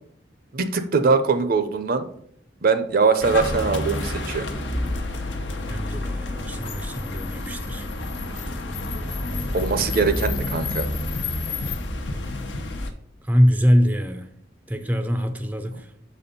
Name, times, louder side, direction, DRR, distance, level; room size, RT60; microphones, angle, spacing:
voice 1, 0.5-2.1 2.6-4.5 9.5-10.9, right 4 dB, 55° right, 10 dB, 0.6 m, -22 dB
sound 1, 3.2-12.9, left 2 dB, 80° left, 0.9 m, -29 dB
voice 2, 5.7-7.9 13.2-14.3 14.7-15.9, equal, 10° right, 7 dB, 0.5 m, -23 dB
6.2 x 4.2 x 5.2 m, 0.66 s
head